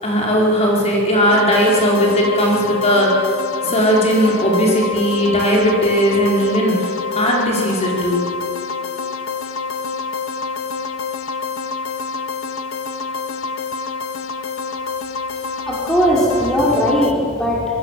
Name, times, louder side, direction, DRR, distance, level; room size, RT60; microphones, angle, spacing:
voice 1, 0.0-3.3 3.6-8.2, equal, 30° left, -3 dB, 5.4 m, -17 dB
sound 1, 1.3-17.1, left 4 dB, 75° left, 1.2 m, -26 dB
voice 2, 15.7-17.7, equal, 5° left, -4 dB, 4.8 m, -18 dB
26.5 x 22.0 x 7.8 m, 2.4 s
head